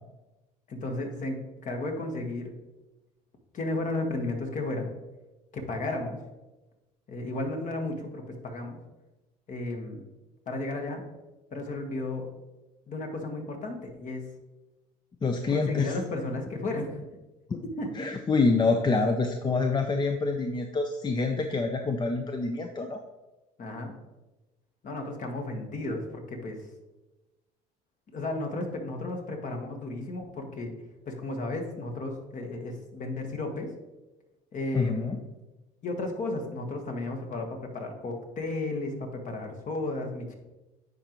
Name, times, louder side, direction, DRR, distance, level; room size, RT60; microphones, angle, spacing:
voice 1, 0.7-2.5 3.5-4.9 5.5-6.2 7.1-8.8 9.5-10.1 10.5-11.0 11.5-12.3 12.9-14.3 15.5-17.0 17.8-17.9 23.6-23.9 24.8-26.7 28.1-30.7 31.1-33.7 34.5-35.2 35.8-40.3, left 2 dB, 45° left, 3 dB, 1.4 m, -33 dB
voice 2, 15.2-16.0 17.5-17.6 17.9-23.0 34.7-35.2, left 4 dB, 25° left, 5 dB, 0.6 m, -26 dB
9.9 x 4.0 x 3.0 m, 1.1 s
supercardioid pair, 75°, 18 cm